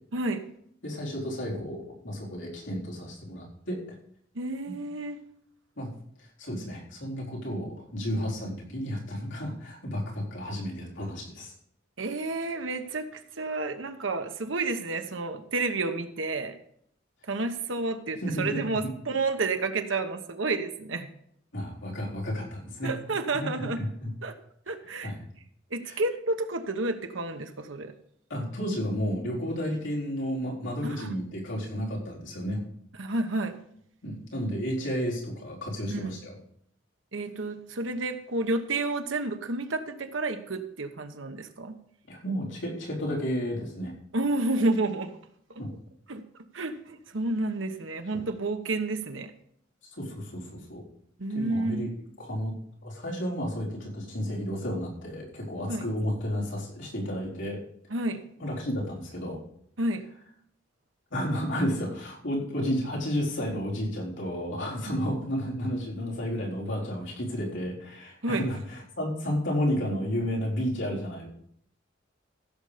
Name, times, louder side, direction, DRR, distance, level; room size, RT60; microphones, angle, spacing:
voice 1, 0.1-0.4 4.3-5.2 12.0-16.6 17.3-21.1 22.8-23.8 24.2-24.3 24.7-25.1 25.7-27.9 30.8-31.1 33.0-33.5 35.9-36.1 37.1-41.7 44.1-45.1 45.5-45.6 46.1-46.2 46.5-49.3 51.2-51.9 55.7-55.8 57.9-58.2 59.8-60.0 64.8-65.0 68.2-68.5, right 2 dB, 80° right, 7 dB, 1.1 m, -30 dB
voice 2, 0.8-3.8 5.8-5.9 6.4-11.5 18.2-18.9 21.5-22.9 23.3-24.1 25.0-25.2 25.8-26.0 28.3-32.6 34.0-36.3 42.1-43.9 45.6-45.7 48.1-48.2 49.8-50.8 51.3-51.9 52.2-52.5 52.8-57.6 58.4-59.4 61.1-71.3, equal, 70° left, -4 dB, 4.1 m, -32 dB
15.5 x 6.9 x 5.0 m, 0.68 s
head